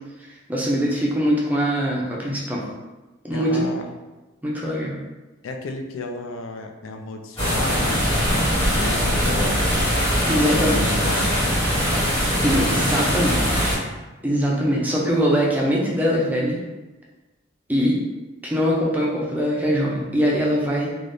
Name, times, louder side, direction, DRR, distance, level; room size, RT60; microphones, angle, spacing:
voice 1, 0.5-2.6 3.2-3.6 4.4-5.0 10.3-10.8 12.4-13.8 14.2-16.6 17.7-18.0 18.5-20.9, equal, 10° right, -4 dB, 0.4 m, -22 dB
voice 2, 3.3-3.9 5.4-10.0 10.4-11.5, left 3 dB, 80° left, 5 dB, 0.4 m, -33 dB
sound 1, 7.4-13.7, equal, 30° left, 1.5 m, -21 dB
3.3 x 2.3 x 2.6 m, 1.1 s
head